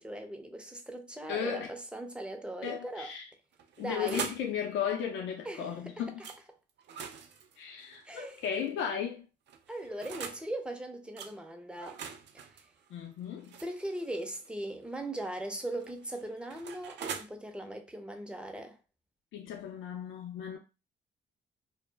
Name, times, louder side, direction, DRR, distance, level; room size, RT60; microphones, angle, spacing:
voice 1, 0.0-3.1 3.8-4.3 5.4-6.0 8.1-8.4 9.7-12.0 12.5-12.7 13.6-18.8, right 1 dB, 5° right, 0.5 m, -39 dB
voice 2, 1.3-1.7 2.6-3.3 3.8-6.2 7.6-9.3 12.9-13.6 19.3-20.6, left 8 dB, 75° left, 0.5 m, -35 dB
sound 1, 3.5-4.5 6.2-6.4 6.8-8.7 9.5-10.5 11.2-11.3 11.8-14.5 15.6-17.2, right 6 dB, 60° right, 0.4 m, -43 dB
2.1 x 2.0 x 3.2 m
cardioid pair, 90°, 20 cm